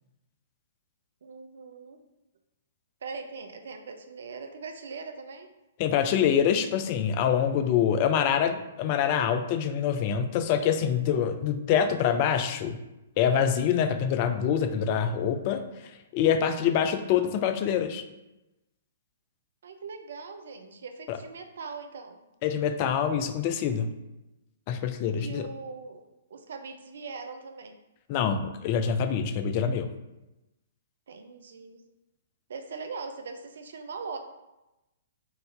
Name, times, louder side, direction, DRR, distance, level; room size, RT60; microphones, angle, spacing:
voice 1, 1.2-2.0 3.0-5.5 16.4-16.9 19.6-22.2 25.2-26.0 26.3-27.8 31.1-31.8 32.5-34.2, right 4 dB, 65° right, 6 dB, 0.5 m, -41 dB
voice 2, 5.8-12.8 13.2-15.6 16.1-18.0 21.1-21.2 22.4-23.9 24.7-25.5 28.1-29.9, left 8 dB, 40° left, 8 dB, 0.4 m, -25 dB
4.0 x 2.6 x 4.1 m, 0.96 s
figure-of-eight pair, 120°, 0 cm